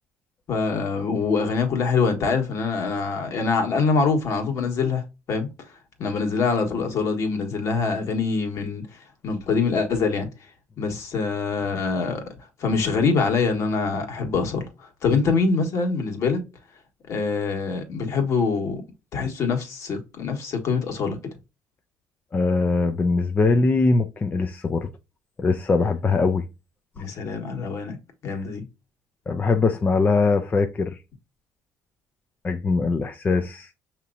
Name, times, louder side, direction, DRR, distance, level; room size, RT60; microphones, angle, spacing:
voice 1, 0.5-5.0 5.3-5.5 6.0-8.8 9.2-10.3 10.8-12.2 12.6-14.6 15.0-16.4 17.1-18.8 19.1-21.2 27.0-27.9 28.2-28.6, left 4 dB, 60° left, 1.5 m, -24 dB
voice 2, 22.3-24.9 25.4-26.5 28.3-28.4 29.3-31.0 32.4-33.7, left 3 dB, 30° left, 0.5 m, -22 dB
5.9 x 2.9 x 2.5 m
cardioid pair, 90°, 6 cm